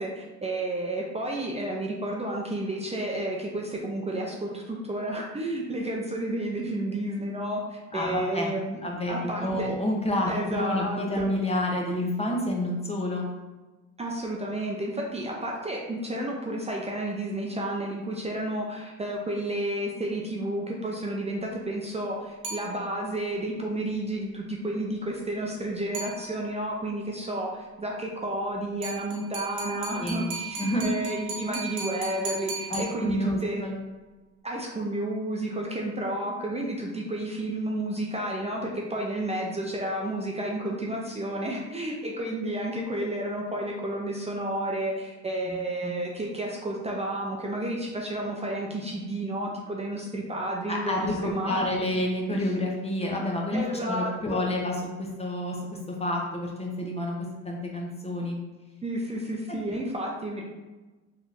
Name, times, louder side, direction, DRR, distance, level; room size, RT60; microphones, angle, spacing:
voice 1, 0.0-8.8 9.1-9.7 10.3-11.3 14.0-33.6 34.4-52.0 52.3-52.5 53.5-54.4 58.8-60.4, right 1 dB, 20° right, -2 dB, 0.5 m, -31 dB
voice 2, 7.9-8.5 8.8-13.2 30.0-30.3 30.6-31.0 32.7-33.8 45.5-45.6 45.8-45.9 50.7-54.7 55.0-55.6 55.9-58.4 59.5-59.6, left 1 dB, 20° left, -1 dB, 0.7 m, -29 dB
sound 1, 22.4-23.2 25.9-26.7 28.8-33.5, right 4 dB, 85° right, 0.9 m, -37 dB
3.5 x 2.8 x 2.5 m, 1.2 s
cardioid pair, 90°, 30 cm